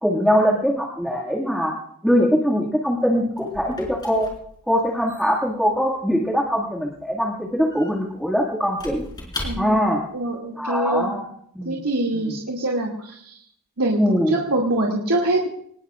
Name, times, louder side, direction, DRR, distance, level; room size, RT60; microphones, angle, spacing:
voice 1, 0.0-1.7 2.0-4.3 4.7-9.0 9.6-10.0 10.6-11.2 11.5-11.8 12.1-12.3 14.0-14.3, equal, ahead, -4 dB, 2.1 m, -22 dB
Squeak / Wood, 2.8-10.0, left 1 dB, 20° left, 4.9 m, -39 dB
voice 2, 9.4-9.8 10.1-11.1 11.6-13.4 13.8-15.5, right 1 dB, 85° right, -2 dB, 2.4 m, -24 dB
25.5 x 20.0 x 2.5 m, 0.68 s
head